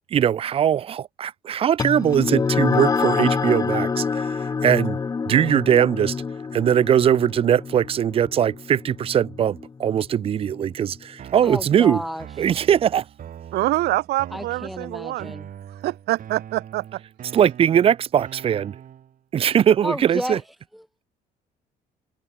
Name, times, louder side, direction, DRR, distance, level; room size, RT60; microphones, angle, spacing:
voice 1, 0.1-5.0 5.3-6.2 6.5-12.0 12.4-13.0 17.3-18.8 19.3-20.4, right 9 dB, 35° right, 0.3 m, -20 dB
sound 1, 1.8-10.6, left 5 dB, 20° left, 0.6 m, -26 dB
sound 2, 11.2-19.2, right 9 dB, 55° right, 5.9 m, -42 dB
voice 2, 11.4-12.6 14.3-15.5 19.8-20.4 20.7-20.8, equal, ahead, 2.4 m, -32 dB
voice 3, 13.5-15.3 15.8-16.8, right 17 dB, 75° right, 0.8 m, -25 dB
open air
cardioid pair, 110°, 17 cm